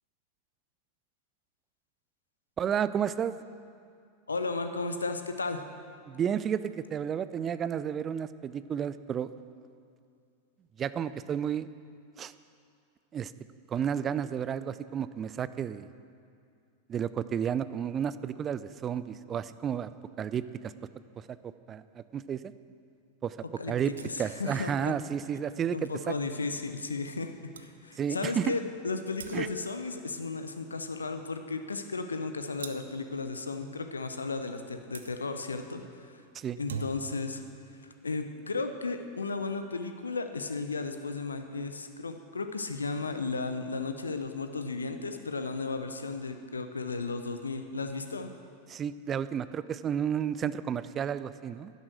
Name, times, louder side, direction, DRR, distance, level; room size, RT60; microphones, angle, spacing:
voice 1, 2.6-3.3 6.1-9.3 10.8-11.7 12.2-12.3 13.1-13.3 13.7-15.9 16.9-19.9 20.2-20.7 21.2-22.5 23.2-23.4 23.7-23.9 24.2-26.1 28.0-28.5 29.3-29.5 36.3-36.6 48.7-51.7, right 8 dB, 25° right, 15 dB, 0.4 m, -32 dB
voice 2, 4.3-5.6 23.6-23.8 24.0-24.9 25.7-36.2 36.6-37.4 38.0-48.3, left 3 dB, 75° left, 8 dB, 0.7 m, -34 dB
sound 1, 23.9-24.4 27.1-27.2 27.5-27.7 29.2-29.7 32.6-33.0 34.9-35.1 36.4-37.3, right 6 dB, 65° right, 0.7 m, -42 dB
11.0 x 10.5 x 6.4 m, 2.4 s
figure-of-eight pair, 90°, 0 cm